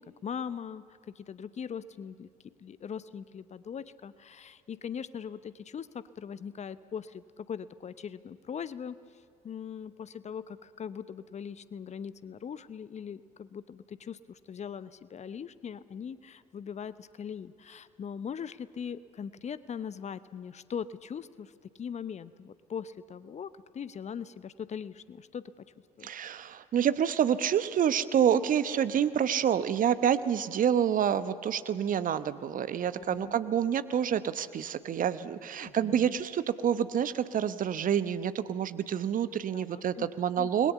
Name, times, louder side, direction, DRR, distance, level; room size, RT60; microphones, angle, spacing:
voice 1, 0.0-2.3 2.6-9.0 9.4-21.5 21.8-25.6 26.0-26.1 33.0-33.4 35.6-36.2 39.5-40.1 40.4-40.5, left 7 dB, 35° left, 16 dB, 0.9 m, -40 dB
voice 2, 26.0-40.7, right 9 dB, 45° right, 14 dB, 1.1 m, -28 dB
29.0 x 21.0 x 7.0 m, 2.6 s
figure-of-eight pair, 55°, 20 cm